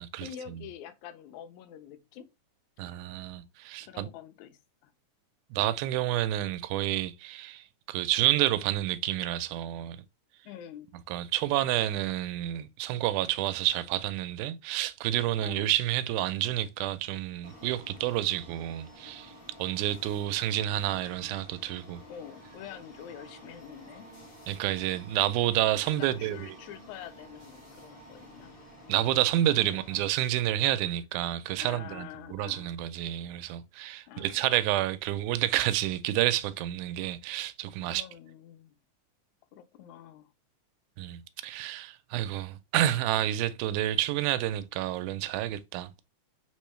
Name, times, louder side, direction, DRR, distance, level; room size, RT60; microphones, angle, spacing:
voice 1, 0.2-2.3 3.8-4.9 10.4-10.9 15.4-15.7 22.1-24.1 25.8-28.5 29.5-30.0 31.6-32.8 34.1-34.7 37.8-38.7 39.5-40.3, left 10 dB, 80° left, 1.9 m, -46 dB
voice 2, 2.8-4.1 5.5-10.0 11.1-19.3 19.6-22.0 24.5-26.5 28.9-38.0 41.0-45.9, right 13 dB, 85° right, 2.0 m, -29 dB
sound 1, 17.4-30.1, left 1 dB, 35° left, 0.9 m, -51 dB
4.5 x 3.5 x 3.1 m
omnidirectional pair, 3.5 m